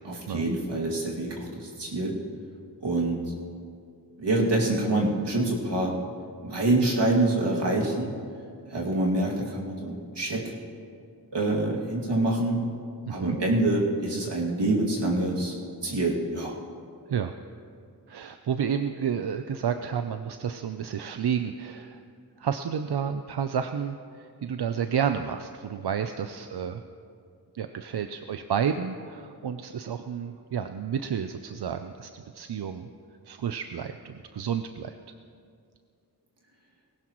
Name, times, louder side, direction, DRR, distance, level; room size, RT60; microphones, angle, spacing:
voice 1, 0.0-2.1 2.8-3.2 4.2-5.9 6.4-8.1 8.7-10.4 11.3-12.6 13.1-15.6 15.8-16.5, right 2 dB, 90° right, -3 dB, 2.4 m, -26 dB
voice 2, 13.1-13.4 17.1-17.3 18.1-22.0 22.4-26.8 27.5-32.9 33.2-34.9, right 7 dB, 70° right, 8 dB, 0.6 m, -31 dB
19.5 x 17.5 x 3.1 m, 2.3 s
wide cardioid pair, 75°, 41 cm